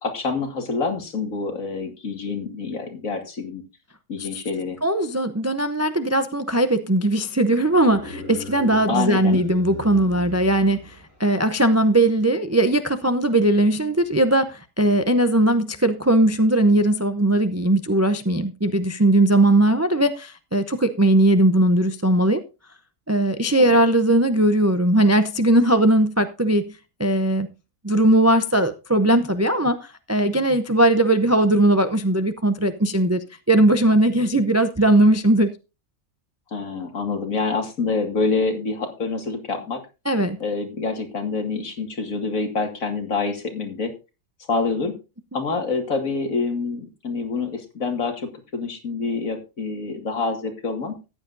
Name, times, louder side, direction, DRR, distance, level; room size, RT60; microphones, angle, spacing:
voice 1, 0.0-3.6 4.1-4.8 8.9-9.4 23.6-23.8 36.5-39.8 40.4-43.9 44.5-44.9 45.3-50.9, left 4 dB, 70° left, 2.4 m, -26 dB
voice 2, 4.8-22.4 23.1-27.5 27.8-35.5 40.1-40.4, right 1 dB, 25° right, 0.3 m, -19 dB
sound 1, 7.6-11.3, left 1 dB, 50° left, 7.5 m, -38 dB
14.5 x 9.9 x 2.6 m
omnidirectional pair, 1.5 m